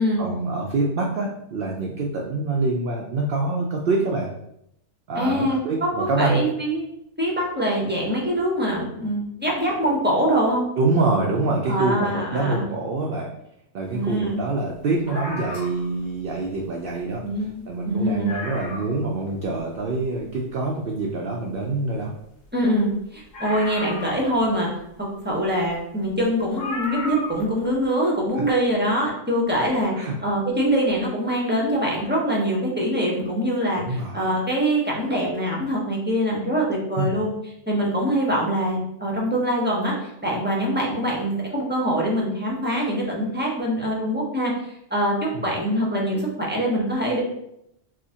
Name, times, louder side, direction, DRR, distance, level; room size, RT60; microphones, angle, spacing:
voice 1, 0.2-4.3 5.1-6.4 10.8-13.3 13.7-17.2 17.7-22.1 28.4-28.5 29.9-30.2 33.7-34.4 37.0-37.2 45.3-45.5, right 3 dB, 65° right, 0 dB, 0.6 m, -25 dB
voice 2, 5.2-6.8 7.2-10.6 11.7-12.6 13.9-14.4 17.2-18.4 22.5-24.7 25.0-37.3 37.7-44.5 44.9-45.2 45.4-47.2, equal, 10° right, -3 dB, 0.6 m, -24 dB
sound 1, 15.1-16.0 17.1-17.2 17.5-17.6 18.0-18.1 18.2-19.1 19.6-19.7 23.3-24.6 25.8-25.9 26.6-27.5 27.8-27.9, left 2 dB, 75° left, 1.3 m, -34 dB
4.9 x 2.1 x 2.8 m, 0.78 s
omnidirectional pair, 1.4 m